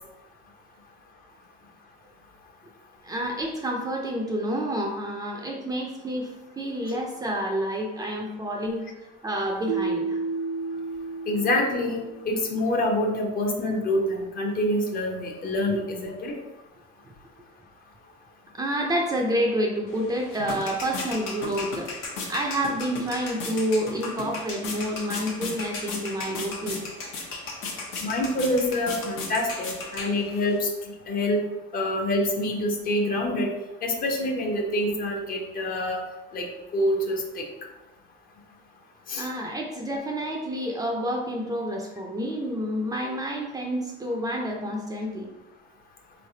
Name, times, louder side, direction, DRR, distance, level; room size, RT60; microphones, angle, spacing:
voice 1, 3.0-10.2 15.7-15.8 18.5-21.9 22.3-26.8 39.2-45.3, equal, 20° right, 0 dB, 0.4 m, -29 dB
Keyboard (musical), 9.7-12.5, right 4 dB, 85° right, 0.5 m, -31 dB
voice 2, 11.3-16.4 28.0-31.4 31.7-33.5 33.8-36.0 36.3-36.5 36.7-37.4 39.1-39.3, left 1 dB, 45° left, 1 dB, 0.7 m, -26 dB
sound 1, 19.9-30.6, left 3 dB, 75° left, 0.9 m, -36 dB
4.0 x 3.2 x 2.7 m, 1.1 s
cardioid pair, 140°, 21 cm